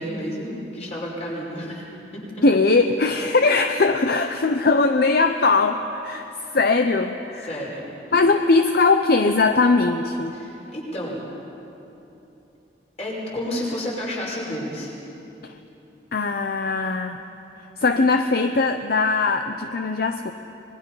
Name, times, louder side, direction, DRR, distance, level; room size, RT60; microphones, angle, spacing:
voice 1, 0.0-1.8 2.1-2.2 7.4-7.8 10.3-11.2 13.0-14.9, equal, 40° left, -4 dB, 5.6 m, -30 dB
voice 2, 2.4-7.5 8.1-10.4 15.4-15.5 16.1-17.2 17.8-20.3, left 3 dB, 60° left, 7 dB, 0.7 m, -20 dB
25.5 x 21.0 x 5.6 m, 3.0 s
head